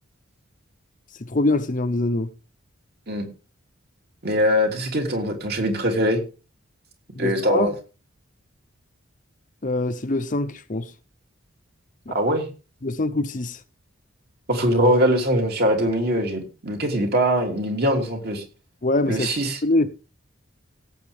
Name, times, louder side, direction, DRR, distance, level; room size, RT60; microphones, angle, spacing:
voice 1, 1.2-2.3 7.2-7.7 9.6-10.9 12.1-12.2 12.8-13.6 18.8-19.3 19.6-19.9, left 2 dB, 40° left, 0.7 m, -24 dB
voice 2, 4.2-6.2 7.2-7.7 12.1-12.5 14.5-18.4 19.1-19.6, equal, 50° right, 3.1 m, -22 dB
17.0 x 7.9 x 3.5 m
head